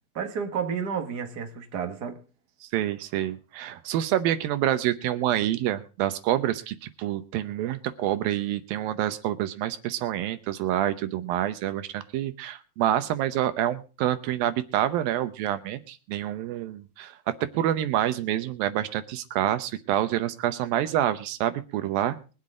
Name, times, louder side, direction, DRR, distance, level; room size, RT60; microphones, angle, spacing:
voice 1, 0.1-2.2, right 7 dB, 55° right, 1.1 m, -31 dB
voice 2, 2.6-22.2, right 12 dB, 75° right, 2.6 m, -27 dB
23.0 x 8.0 x 3.7 m
omnidirectional pair, 4.3 m